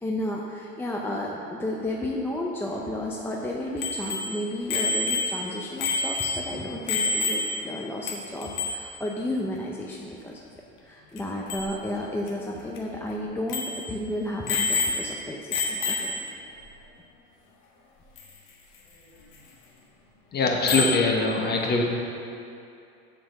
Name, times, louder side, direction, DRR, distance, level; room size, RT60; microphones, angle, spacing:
voice 1, 0.0-10.4 10.8-16.2, left 1 dB, 5° left, -2 dB, 0.5 m, -32 dB
Bicycle bell, 3.8-7.8 8.1-8.2 8.4-8.9 11.2-11.3 11.5-11.7 12.3-12.4 12.8-12.9 13.5-13.9 14.5-15.2 15.5-16.3 18.2-18.3 20.7-21.1, left 3 dB, 60° left, 1.4 m, -28 dB
voice 2, 20.3-21.8, left 3 dB, 30° left, 1 dB, 1.2 m, -23 dB
7.5 x 5.0 x 6.4 m, 2.6 s
supercardioid pair, 120°, 35 cm